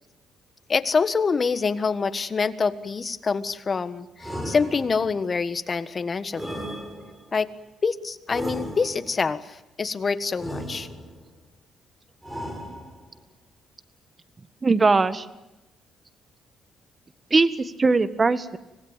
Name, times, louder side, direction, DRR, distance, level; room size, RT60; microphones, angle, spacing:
voice 1, 0.7-6.6 7.3-7.5 7.8-10.9, left 5 dB, 35° left, 13 dB, 1.5 m, -26 dB
sound 1, 4.2-5.3 6.3-7.4 8.3-9.2 10.4-11.3 12.2-13.2, equal, 10° right, 7.5 m, -36 dB
voice 2, 14.6-15.2 17.3-18.6, right 3 dB, 30° right, 13 dB, 1.7 m, -20 dB
25.5 x 19.0 x 9.2 m, 0.97 s
cardioid pair, 90°, 0 cm